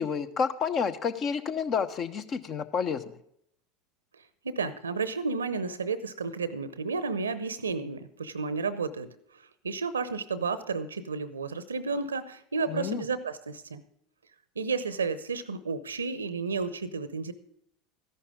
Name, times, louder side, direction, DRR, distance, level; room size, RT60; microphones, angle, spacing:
voice 1, 0.0-3.1 12.7-13.0, left 6 dB, 40° left, 10 dB, 1.0 m, -30 dB
voice 2, 4.4-9.1 9.6-13.8 14.6-17.3, right 4 dB, 85° right, 15 dB, 0.8 m, -32 dB
14.0 x 11.0 x 3.7 m, 0.70 s
figure-of-eight pair, 75°, 0 cm